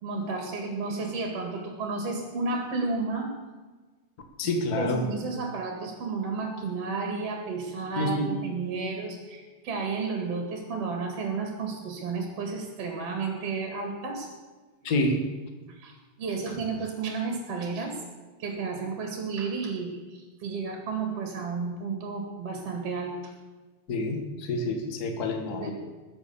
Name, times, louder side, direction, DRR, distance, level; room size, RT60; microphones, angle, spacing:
voice 1, 0.0-3.3 4.4-14.3 15.7-17.9 18.4-23.3 25.5-25.7, right 4 dB, 45° right, 3 dB, 2.6 m, -32 dB
voice 2, 4.4-5.0 8.0-8.3 14.8-15.2 23.9-25.7, left 2 dB, 60° left, 4 dB, 0.9 m, -28 dB
21.0 x 8.0 x 7.1 m, 1.3 s
omnidirectional pair, 4.8 m